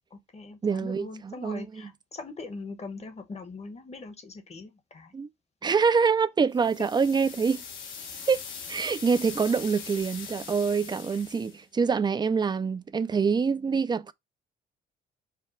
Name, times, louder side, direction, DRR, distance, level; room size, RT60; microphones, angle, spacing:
voice 1, 0.1-5.1 11.1-11.2, left 3 dB, 35° left, 1.0 m, -41 dB
voice 2, 0.6-1.9 5.1-5.3 5.6-7.6 8.3-8.4 8.7-14.1, right 5 dB, 20° right, 0.4 m, -25 dB
sound 1, 6.6-11.6, left 6 dB, 80° left, 1.2 m, -41 dB
5.0 x 2.2 x 4.3 m
cardioid pair, 90°, 20 cm